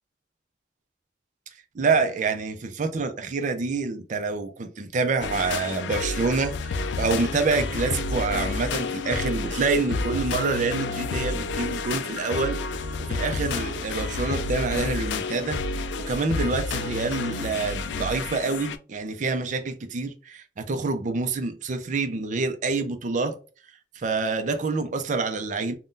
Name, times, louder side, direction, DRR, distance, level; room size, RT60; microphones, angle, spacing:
voice 1, 1.7-12.6 13.0-15.6 16.1-23.4 24.0-25.8, right 4 dB, 45° right, 0.4 m, -27 dB
sound 1, 5.2-18.8, left 3 dB, 80° left, 0.3 m, -30 dB
2.6 x 2.2 x 3.5 m
head